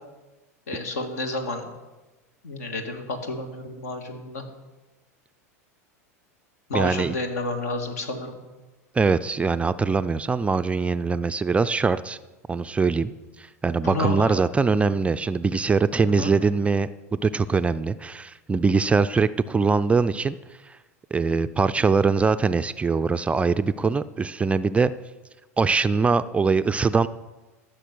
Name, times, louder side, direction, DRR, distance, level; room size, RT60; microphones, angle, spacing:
voice 1, 0.7-1.7 2.4-4.4 6.7-8.3 13.8-14.4 16.2-16.3, left 2 dB, 75° left, 5 dB, 2.0 m, -30 dB
voice 2, 6.7-7.1 8.9-12.2 12.5-13.1 13.4-20.4 20.7-20.8 21.1-24.9 25.6-27.1, right 4 dB, 15° right, 12 dB, 0.4 m, -22 dB
14.0 x 6.6 x 6.1 m, 1.1 s
hypercardioid pair, 90°, 8 cm